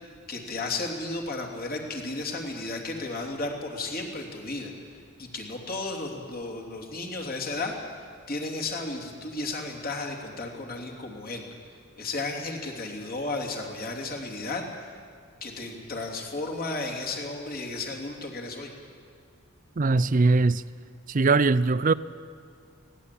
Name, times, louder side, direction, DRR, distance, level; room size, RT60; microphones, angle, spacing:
voice 1, 0.3-4.7 5.2-11.4 12.0-14.7 15.4-18.7, left 2 dB, 45° left, 3.1 m, -34 dB
voice 2, 19.8-20.6 21.1-21.9, right 3 dB, 40° right, 0.5 m, -21 dB
20.5 x 17.5 x 8.5 m
head